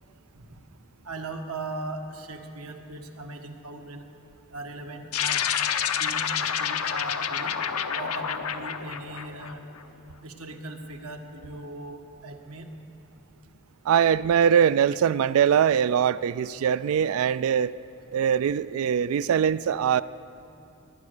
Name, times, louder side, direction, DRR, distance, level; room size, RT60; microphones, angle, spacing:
voice 1, 1.0-4.0 4.5-5.4 6.0-7.6 7.9-9.6 10.2-12.7, right 2 dB, 90° right, 4 dB, 1.4 m, -38 dB
sound 1, 5.1-9.8, left 8 dB, 85° left, 0.8 m, -28 dB
voice 2, 13.9-17.8 18.1-20.0, right 8 dB, 70° right, 18 dB, 0.3 m, -22 dB
19.0 x 11.0 x 6.7 m, 2.9 s
head